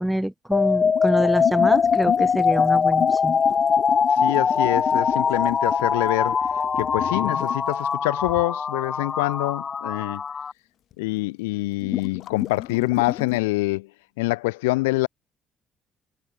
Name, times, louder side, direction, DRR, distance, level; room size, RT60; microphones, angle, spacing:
voice 1, 0.0-3.4, right 1 dB, 5° right, 0.5 m, -26 dB
sound 1, 0.5-10.5, left 6 dB, 45° left, 0.9 m, -22 dB
sound 2, 0.9-7.6 10.9-11.0 11.8-13.4, left 12 dB, 65° left, 2.5 m, -32 dB
voice 2, 4.1-6.4 6.8-10.2 11.0-13.9 14.2-15.1, left 22 dB, 90° left, 0.9 m, -25 dB
hypercardioid pair, 55°, 0 cm